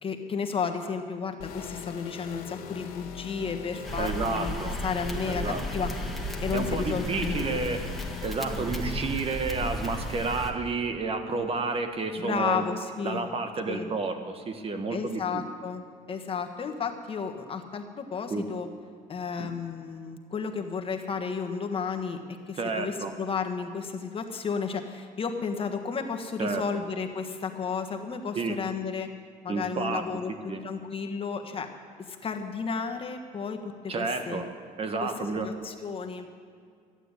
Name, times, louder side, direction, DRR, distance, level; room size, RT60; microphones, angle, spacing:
voice 1, 0.0-4.5 4.8-5.9 6.4-7.6 12.2-13.3 13.7-13.9 14.9-15.8 16.1-18.7 19.1-29.1 29.4-30.3 30.6-31.7 32.1-34.4 35.0-35.1 35.4-36.3, left 5 dB, 35° left, 5 dB, 1.4 m, -33 dB
sound 1, 1.4-8.3, left 7 dB, 90° left, 1.9 m, -41 dB
sound 2, 3.8-10.5, equal, ahead, 1.6 m, -34 dB
voice 2, 4.0-4.8 5.3-5.6 6.5-7.8 8.2-12.7 13.0-15.4 18.3-18.4 19.4-19.5 22.6-23.1 26.4-26.6 28.3-28.6 29.5-30.0 30.5-30.6 33.9-34.5 34.8-35.5, right 4 dB, 40° right, 7 dB, 1.5 m, -30 dB
14.0 x 9.0 x 9.8 m, 2.2 s
cardioid pair, 115°, 15 cm